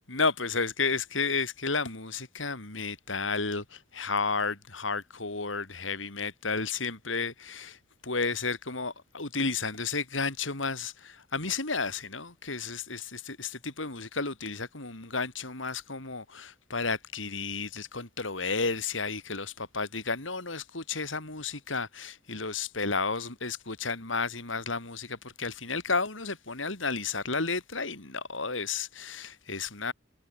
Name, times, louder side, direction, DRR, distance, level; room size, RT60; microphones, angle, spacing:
voice 1, 0.1-29.9, left 4 dB, 85° left, 4.5 m, -32 dB
head